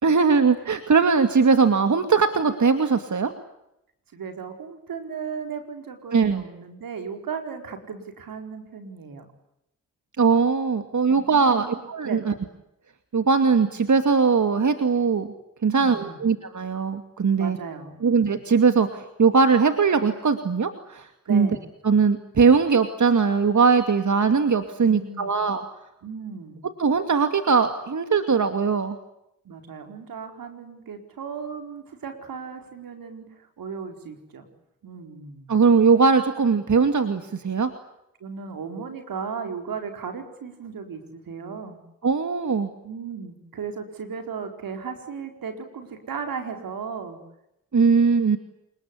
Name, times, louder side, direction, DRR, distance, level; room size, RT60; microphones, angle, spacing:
voice 1, 0.0-3.3 6.1-6.4 10.2-12.3 13.1-15.3 15.6-17.6 18.0-21.5 21.8-25.6 26.8-29.0 35.5-37.7 42.0-42.7 47.7-48.4, right 5 dB, 60° right, 8 dB, 2.5 m, -20 dB
voice 2, 4.1-9.3 11.1-12.3 15.7-16.2 17.4-18.0 21.3-21.6 24.9-25.3 26.0-26.6 29.4-34.5 34.8-35.6 38.2-41.8 42.8-47.2, right 6 dB, 85° right, 5 dB, 4.8 m, -36 dB
28.5 x 20.5 x 9.9 m, 0.83 s
supercardioid pair, 40°, 34 cm